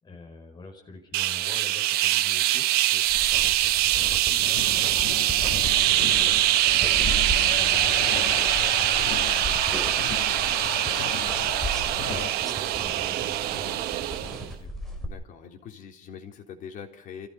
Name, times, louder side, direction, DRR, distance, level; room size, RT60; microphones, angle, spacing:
voice 1, 0.0-2.7 3.6-11.5 11.9-14.8, left 3 dB, 25° left, 3 dB, 5.0 m, -46 dB
sound 1, 1.1-14.5, right 14 dB, 85° right, 1.2 m, -23 dB
sound 2, 3.1-15.1, equal, ahead, 3.8 m, -36 dB
sound 3, 4.4-12.3, left 9 dB, 85° left, 2.0 m, -36 dB
voice 2, 15.1-17.3, left 7 dB, 55° left, 4 dB, 3.5 m, -43 dB
29.0 x 15.5 x 5.8 m, 0.72 s
cardioid pair, 160°, 16 cm